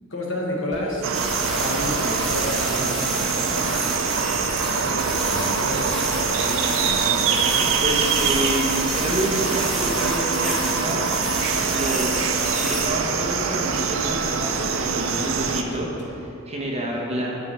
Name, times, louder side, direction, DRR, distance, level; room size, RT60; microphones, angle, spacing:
voice 1, 0.1-7.3, left 1 dB, 60° left, -1 dB, 1.2 m, -32 dB
sound 1, 0.7-16.3, equal, 30° left, 0.7 m, -45 dB
sound 2, 1.0-15.6, right 5 dB, 65° right, 0.5 m, -24 dB
sound 3, 1.1-12.9, equal, ahead, 0.8 m, -31 dB
voice 2, 7.8-11.1 11.7-12.1 12.5-17.3, right 1 dB, 30° right, -3 dB, 1.1 m, -28 dB
9.6 x 4.6 x 5.5 m, 2.9 s
head